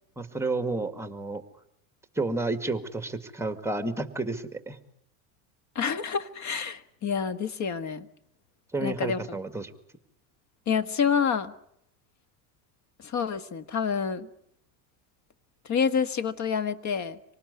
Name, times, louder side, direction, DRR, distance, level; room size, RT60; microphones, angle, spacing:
voice 1, 0.2-1.4 2.2-4.8 8.7-9.7, right 2 dB, 5° right, 9 dB, 2.0 m, -31 dB
voice 2, 5.7-8.1 8.8-9.4 10.7-11.5 13.0-14.3 15.6-17.2, left 6 dB, 40° left, 13 dB, 1.6 m, -28 dB
26.0 x 19.0 x 9.7 m, 0.75 s
supercardioid pair, 105°, 45 cm